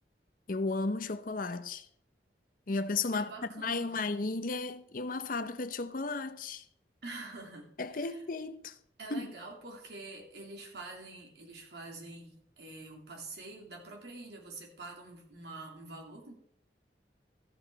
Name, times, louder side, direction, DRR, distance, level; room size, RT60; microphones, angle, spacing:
voice 1, 0.5-1.9 2.7-3.3 3.5-6.6 7.8-8.8 9.1-9.3, left 3 dB, 50° left, 0.7 m, -34 dB
voice 2, 3.1-4.0 7.0-8.2 9.0-16.3, right 2 dB, 65° right, 2.8 m, -46 dB
13.5 x 8.9 x 4.6 m
head